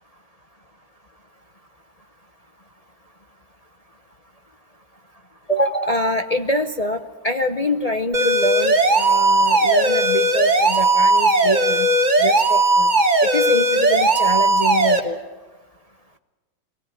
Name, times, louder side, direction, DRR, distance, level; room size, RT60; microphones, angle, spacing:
voice 1, 5.5-11.9 12.2-12.9 13.2-15.2, equal, 40° left, 4 dB, 0.5 m, -25 dB
sound 1, 8.1-15.0, right 2 dB, 25° right, 1.4 m, -17 dB
22.5 x 18.0 x 9.2 m, 1.2 s
omnidirectional pair, 2.0 m